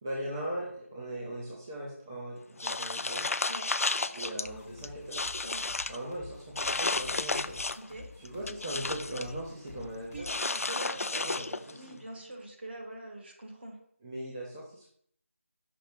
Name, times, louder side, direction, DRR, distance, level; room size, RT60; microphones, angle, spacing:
voice 1, 0.0-3.3 4.1-5.2 5.9-7.6 8.2-10.3 11.1-12.0 14.0-14.9, right 1 dB, 15° right, -5 dB, 0.6 m, -39 dB
sound 1, 2.6-4.5 4.8-6.0 6.6-7.9 8.2-9.3 10.2-11.8, left 3 dB, 80° left, 0.4 m, -32 dB
sound 2, 4.4-10.4, left 4 dB, 15° left, 1.0 m, -50 dB
voice 2, 10.1-11.0 11.7-13.8, right 1 dB, 45° right, 1 dB, 1.4 m, -43 dB
5.9 x 3.1 x 5.1 m, 0.63 s
figure-of-eight pair, 170°, 8 cm